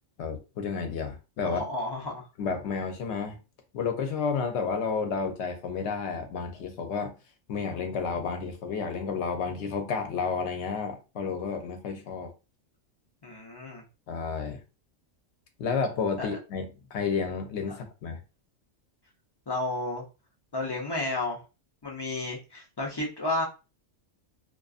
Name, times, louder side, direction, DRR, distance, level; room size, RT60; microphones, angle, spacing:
voice 1, 0.2-1.6 2.4-3.4 3.7-7.2 7.5-12.3 14.1-14.6 15.6-18.2, left 5 dB, 70° left, 0.9 m, -31 dB
voice 2, 1.4-2.3 13.2-13.8 16.2-16.3 17.7-17.8 19.5-20.0 20.5-21.4 21.8-23.4, left 2 dB, 35° left, 0.4 m, -32 dB
2.4 x 2.3 x 2.4 m
omnidirectional pair, 1.3 m